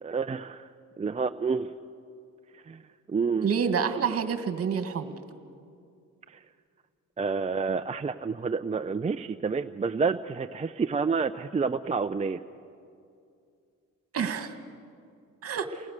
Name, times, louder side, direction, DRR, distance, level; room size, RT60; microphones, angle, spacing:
voice 1, 0.0-0.7 1.0-1.7 2.7-2.8 3.1-3.5 6.3-6.4 7.2-12.4, right 5 dB, 25° right, 8 dB, 0.6 m, -29 dB
voice 2, 3.4-5.2 14.1-14.6 15.4-15.7, right 6 dB, 50° right, 9 dB, 1.9 m, -28 dB
29.0 x 20.5 x 6.6 m, 2.4 s
cardioid pair, 90°, 30 cm